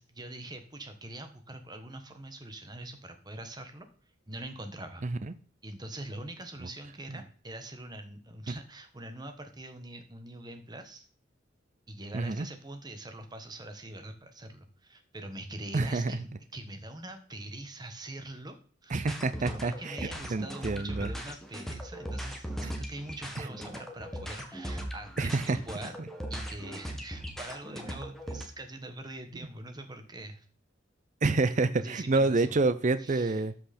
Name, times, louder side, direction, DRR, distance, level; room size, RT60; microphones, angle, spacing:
voice 1, 0.0-3.9 4.3-5.1 5.6-11.1 11.9-18.6 18.8-19.1 19.4-26.0 26.3-30.4 31.8-32.6 33.0-33.4, right 1 dB, 20° right, 7 dB, 1.2 m, -43 dB
voice 2, 5.0-5.3 6.6-6.7 8.5-8.6 12.1-12.5 15.7-16.1 18.9-21.1 23.4-23.5 25.2-25.6 31.2-33.5, right 3 dB, 40° right, 13 dB, 0.5 m, -28 dB
sound 1, 19.0-28.4, equal, ahead, 1.4 m, -39 dB
13.0 x 5.9 x 4.3 m, 0.41 s
head